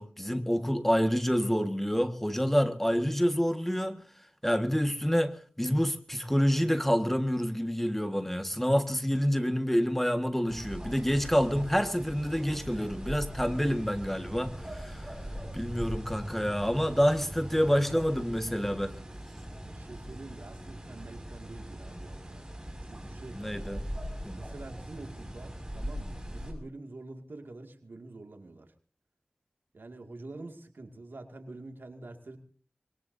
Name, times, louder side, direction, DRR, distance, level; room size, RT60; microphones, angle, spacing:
voice 1, 0.0-4.0 4.4-15.1 15.5-18.9 23.3-23.8 24.2-24.4, equal, 5° left, 1.6 m, -28 dB
sound 1, 10.5-26.5, equal, 20° right, 5.9 m, -41 dB
voice 2, 19.6-22.5 22.8-23.8 24.3-28.7 29.7-32.4, right 2 dB, 85° right, 2.2 m, -46 dB
25.0 x 21.5 x 2.7 m
wide cardioid pair, 55°, 3 cm